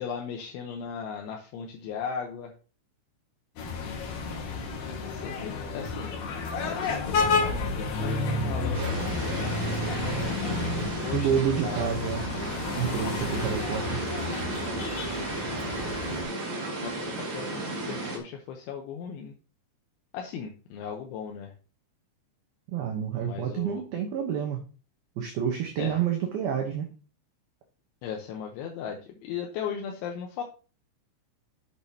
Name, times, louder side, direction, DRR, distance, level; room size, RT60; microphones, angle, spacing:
voice 1, 0.0-2.5 5.0-6.2 6.6-9.3 10.5-11.3 11.6-11.9 16.8-19.3 20.1-21.5 23.2-23.8 25.8-26.0 28.0-30.4, left 7 dB, 80° left, 2 dB, 3.1 m, -37 dB
sound 1, 3.6-16.2, left 3 dB, 55° left, 2.7 m, -31 dB
sound 2, 8.7-18.2, right 2 dB, 55° right, 1.2 m, -34 dB
voice 2, 11.1-12.2 12.8-14.0 22.7-24.6 25.2-26.9, right 8 dB, 75° right, 3 dB, 2.2 m, -28 dB
8.8 x 8.0 x 2.8 m, 0.35 s
omnidirectional pair, 5.7 m